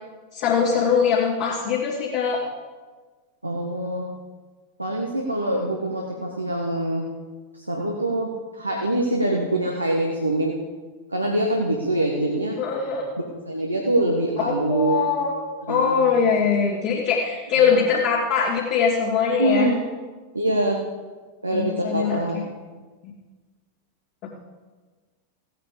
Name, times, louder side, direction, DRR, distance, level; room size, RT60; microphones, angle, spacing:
voice 1, 0.3-2.4 12.6-13.1 14.4-15.3 15.7-19.7 21.5-22.4 24.2-24.3, left 6 dB, 45° left, -9 dB, 3.0 m, -22 dB
voice 2, 3.4-4.1 4.8-7.1 7.5-10.5 11.1-12.6 13.5-15.1 15.7-16.0 17.5-17.7 19.3-19.8 20.3-20.8 21.4-22.4, right 1 dB, 85° right, -1 dB, 1.4 m, -24 dB
16.0 x 9.1 x 5.2 m, 1.4 s
figure-of-eight pair, 90°, 0 cm